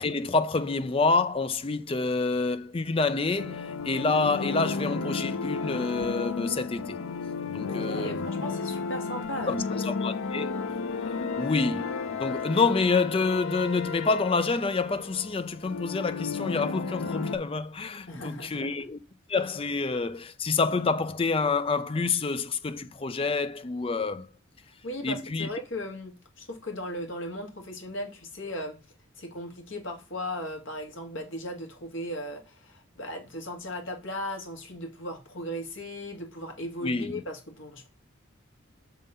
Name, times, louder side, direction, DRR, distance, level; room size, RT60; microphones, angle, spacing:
voice 1, 0.0-7.0 7.5-8.3 9.5-10.5 11.4-19.0 19.3-24.3 25.0-25.5 36.8-37.2, left 4 dB, 25° left, 0.4 m, -27 dB
sound 1, 3.4-17.4, left 4 dB, 85° left, 0.6 m, -33 dB
voice 2, 7.7-9.9 18.1-18.7 24.6-28.8 29.2-37.9, left 1 dB, 70° left, 1.7 m, -37 dB
6.3 x 3.7 x 5.5 m
head